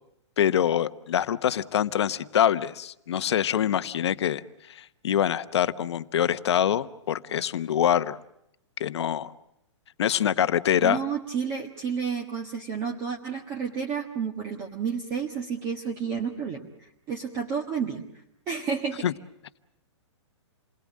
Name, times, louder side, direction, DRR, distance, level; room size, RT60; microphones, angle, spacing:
voice 1, 0.4-4.4 4.7-8.2 8.8-9.3 10.0-11.0 19.0-19.1, left 10 dB, 65° left, 13 dB, 1.0 m, -25 dB
voice 2, 10.8-18.0 18.5-19.0, right 6 dB, 20° right, 1 dB, 1.5 m, -31 dB
29.0 x 21.0 x 7.5 m, 0.83 s
hypercardioid pair, 170°, 16 cm